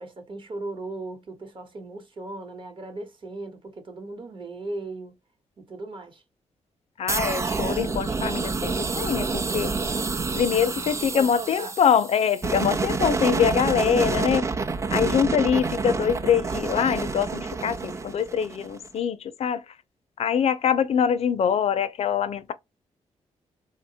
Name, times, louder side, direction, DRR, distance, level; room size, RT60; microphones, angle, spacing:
voice 1, 0.0-5.1 5.6-6.2 10.4-10.6 11.0-11.7, right 2 dB, 45° right, 0.9 m, -37 dB
voice 2, 7.0-9.7 10.3-14.5 14.9-19.6 20.2-22.5, left 8 dB, 60° left, 0.4 m, -24 dB
sound 1, 7.1-18.9, right 4 dB, 25° right, 0.3 m, -28 dB
2.8 x 2.1 x 2.7 m
cardioid pair, 90°, 12 cm